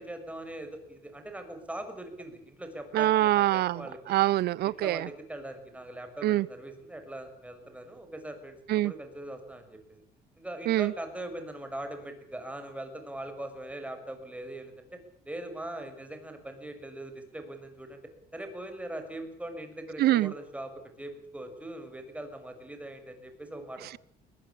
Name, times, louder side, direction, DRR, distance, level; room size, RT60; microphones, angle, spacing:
voice 1, 0.0-4.0 4.8-10.0 10.4-18.0 18.3-20.7 21.0-23.9, right 1 dB, 10° right, 7 dB, 6.2 m, -41 dB
voice 2, 2.9-5.1 6.2-6.5 8.7-8.9 10.7-10.9 20.0-20.3 23.8-24.0, right 15 dB, 70° right, 23 dB, 0.9 m, -25 dB
21.5 x 21.5 x 8.7 m, 0.63 s
cardioid pair, 110°, 17 cm